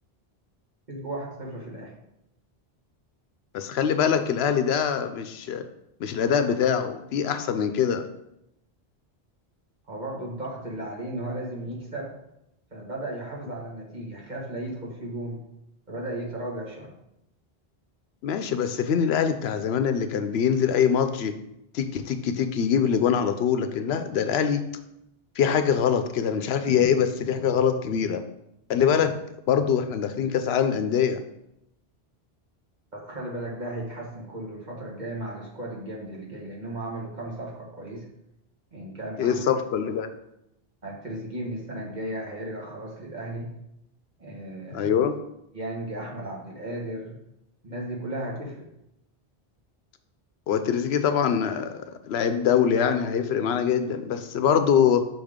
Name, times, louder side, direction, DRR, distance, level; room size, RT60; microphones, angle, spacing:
voice 1, 0.9-1.9 9.9-12.1 12.7-15.4 15.9-16.9 18.4-18.5 32.9-38.0 38.7-39.5 40.8-43.5 44.2-44.9 45.5-47.2 47.6-48.7, right 1 dB, 45° right, -3 dB, 1.7 m, -35 dB
voice 2, 3.5-5.7 6.0-8.1 18.2-21.3 21.7-24.6 25.4-28.2 28.7-29.2 29.5-31.2 39.2-40.1 44.7-45.2 50.5-55.1, left 7 dB, 80° left, 9 dB, 0.8 m, -23 dB
6.1 x 5.2 x 3.6 m, 0.82 s
omnidirectional pair, 1.1 m